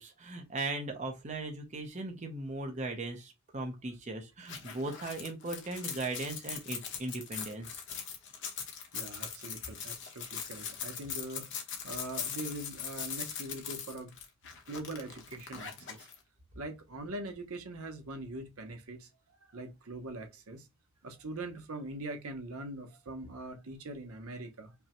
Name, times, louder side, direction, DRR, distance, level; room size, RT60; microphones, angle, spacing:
voice 1, 0.0-7.8, right 2 dB, 30° right, 0.8 m, -38 dB
sound 1, 4.5-16.2, left 7 dB, 55° left, 1.0 m, -41 dB
voice 2, 8.9-11.4 11.8-14.1 14.7-16.1 16.5-19.1 19.4-20.7 21.0-24.7, right 1 dB, 75° right, 0.9 m, -42 dB
5.3 x 2.2 x 2.9 m
head